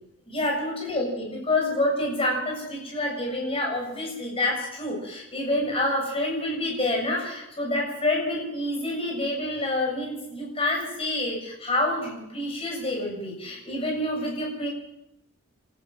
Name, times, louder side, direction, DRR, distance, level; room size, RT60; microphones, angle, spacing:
voice 1, 0.3-14.7, left 1 dB, 25° left, 0 dB, 7.4 m, -27 dB
28.0 x 13.5 x 7.7 m, 0.84 s
head